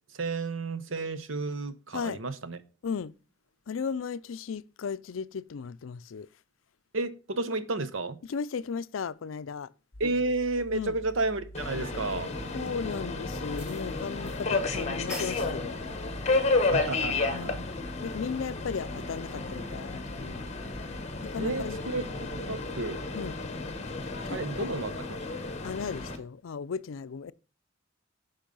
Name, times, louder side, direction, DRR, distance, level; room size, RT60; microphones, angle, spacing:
voice 1, 0.1-2.6 6.9-8.2 10.0-12.3 16.6-17.6 21.3-23.0 24.3-25.0, right 3 dB, 85° right, 0.9 m, -32 dB
voice 2, 2.8-3.1 3.7-6.3 8.3-9.7 10.7-11.0 12.5-15.8 17.3-20.4 21.2-21.8 23.1-23.4 24.2-24.8 25.6-27.3, left 6 dB, 90° left, 0.4 m, -36 dB
sound 1, 9.9-23.3, right 1 dB, 50° left, 1.2 m, -48 dB
Subway metro underground, 11.5-26.2, left 3 dB, 35° left, 1.4 m, -32 dB
sound 2, 12.7-12.8 13.6-14.4 14.7-14.8 15.1-15.5, equal, 5° right, 4.9 m, -42 dB
10.0 x 5.4 x 5.3 m
head